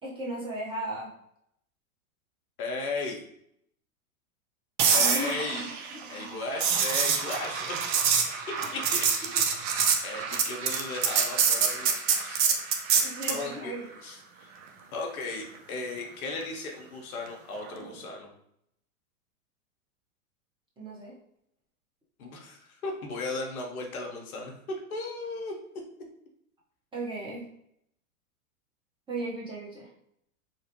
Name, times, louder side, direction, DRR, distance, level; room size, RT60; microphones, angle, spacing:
voice 1, 0.0-1.1 4.9-6.3 8.6-8.7 9.2-9.3 13.0-13.9 20.8-21.1 26.9-27.4 29.1-29.9, right 1 dB, 10° right, -6 dB, 0.8 m, -36 dB
voice 2, 2.6-3.2 4.9-5.7 6.1-7.9 8.7-9.7 10.0-12.5 13.3-14.5 14.9-18.3 22.2-25.5, left 3 dB, 75° left, 1 dB, 0.9 m, -36 dB
sound 1, 4.8-13.5 17.6-17.9, right 6 dB, 35° right, 0.4 m, -26 dB
3.0 x 2.0 x 2.8 m, 0.73 s
hypercardioid pair, 110°, 43 cm